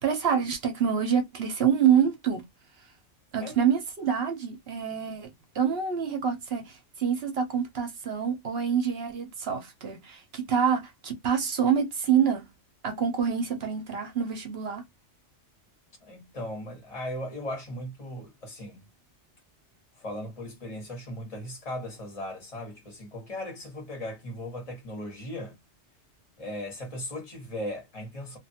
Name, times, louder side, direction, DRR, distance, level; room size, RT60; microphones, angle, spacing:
voice 1, 0.0-2.5 3.3-12.5 12.8-14.8, right 7 dB, 60° right, 0.9 m, -26 dB
voice 2, 16.0-18.9 20.0-25.6 26.4-28.4, left 1 dB, 30° left, 1.4 m, -37 dB
2.6 x 2.5 x 2.8 m
omnidirectional pair, 1.2 m